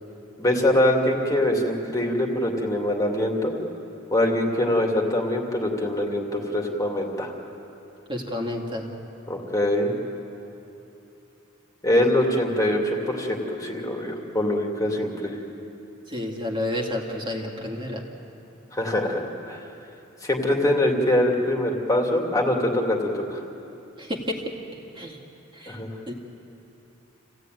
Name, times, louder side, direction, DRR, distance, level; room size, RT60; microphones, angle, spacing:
voice 1, 0.4-3.5 4.1-7.3 9.3-9.9 11.8-15.4 18.7-19.6 20.2-23.4 25.7-25.9, left 1 dB, 15° left, 0 dB, 2.4 m, -23 dB
voice 2, 8.1-8.9 16.1-18.0 24.0-24.4 25.0-25.2 25.5-25.8 26.1-26.2, left 1 dB, 25° right, -1 dB, 2.3 m, -30 dB
28.0 x 16.5 x 9.3 m, 2.9 s
head